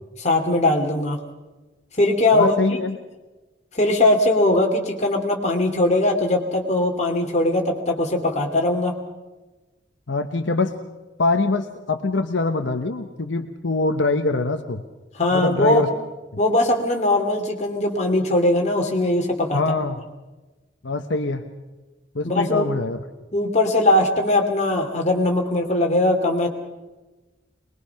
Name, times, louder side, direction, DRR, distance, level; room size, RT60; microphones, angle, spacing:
voice 1, 0.2-1.2 2.0-2.5 3.7-8.9 15.2-15.8 16.4-19.6 22.2-22.7 23.3-26.5, left 1 dB, 35° left, 1 dB, 2.6 m, -20 dB
voice 2, 2.3-3.0 10.1-10.7 11.2-14.8 15.3-15.9 19.5-20.0 20.8-21.4 22.1-23.0, left 3 dB, 70° left, 6 dB, 1.0 m, -23 dB
23.0 x 21.0 x 5.8 m, 1.2 s
head